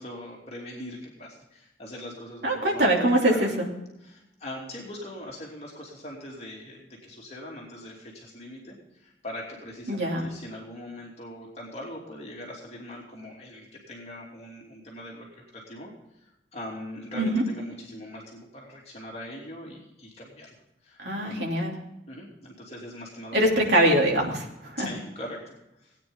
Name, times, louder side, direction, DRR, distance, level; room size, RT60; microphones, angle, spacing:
voice 1, 0.0-3.5 4.0-15.3 15.5-20.5 20.8-21.6 22.1-23.4 24.8-26.0, left 1 dB, 35° left, -3 dB, 2.8 m, -41 dB
voice 2, 2.4-3.6 9.9-10.3 17.1-17.4 21.0-21.8 23.3-24.9, right 1 dB, 75° right, -1 dB, 3.0 m, -23 dB
18.0 x 9.5 x 3.9 m, 0.88 s
head